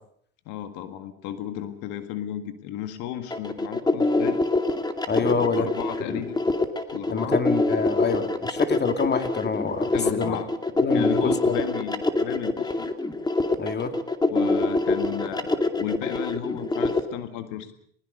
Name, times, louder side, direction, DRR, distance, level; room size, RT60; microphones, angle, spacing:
voice 1, 0.5-4.4 5.2-6.4 6.9-7.4 9.9-10.5 10.9-12.9 14.2-17.7, left 11 dB, 75° left, 9 dB, 1.9 m, -34 dB
sound 1, 3.3-17.0, left 2 dB, 15° left, 2.4 m, -24 dB
voice 2, 5.1-5.7 6.1-6.2 7.1-10.4 10.8-11.6 13.6-13.9, left 5 dB, 35° left, 8 dB, 2.4 m, -26 dB
21.0 x 20.5 x 6.6 m, 0.64 s
supercardioid pair, 85°, 31 cm